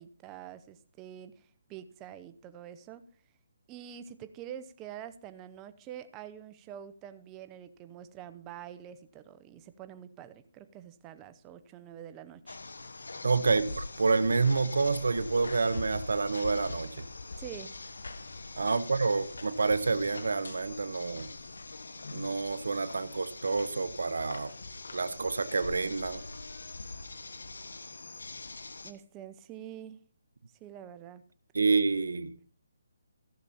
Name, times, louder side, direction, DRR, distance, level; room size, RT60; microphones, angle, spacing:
voice 1, 0.0-3.0 3.7-12.6 13.4-13.5 17.4-17.8 18.6-18.7 28.8-30.0 30.6-31.2, right 10 dB, 20° right, 12 dB, 0.7 m, -46 dB
sound 1, 12.5-28.9, left 3 dB, 85° left, 1.1 m, -43 dB
voice 2, 13.2-17.0 18.6-21.3 22.1-24.5 24.9-26.2 31.5-32.3, right 4 dB, 80° right, 14 dB, 0.9 m, -28 dB
15.5 x 6.9 x 4.2 m, 0.43 s
hypercardioid pair, 155°, 0 cm